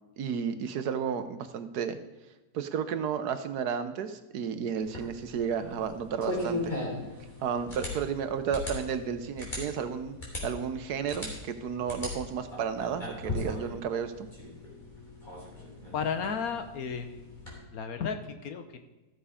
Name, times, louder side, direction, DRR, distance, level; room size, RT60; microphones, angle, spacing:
voice 1, 0.2-2.0 2.5-6.7 7.4-14.3, right 7 dB, 70° right, 9 dB, 1.3 m, -32 dB
sound 1, 4.8-17.6, left 2 dB, 25° left, 3.5 m, -39 dB
voice 2, 15.9-17.3 17.7-18.9, left 6 dB, 65° left, 8 dB, 1.3 m, -33 dB
14.0 x 7.2 x 5.0 m, 1.1 s
omnidirectional pair, 1.8 m